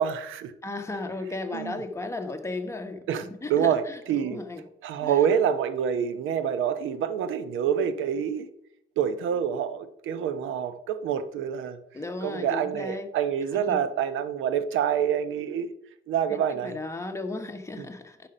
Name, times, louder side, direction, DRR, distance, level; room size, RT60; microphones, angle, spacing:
voice 1, 0.0-0.5 1.5-1.8 3.1-4.4 4.8-8.5 9.0-11.8 12.2-15.7 16.1-16.8 17.8-17.9, right 8 dB, 85° right, 13 dB, 0.9 m, -27 dB
voice 2, 0.6-3.1 3.4-4.6 5.0-5.2 11.9-13.1 13.7-13.8 16.3-18.3, left 2 dB, 15° left, 5 dB, 1.2 m, -35 dB
9.8 x 6.0 x 5.0 m, 0.78 s
cardioid pair, 90°, 20 cm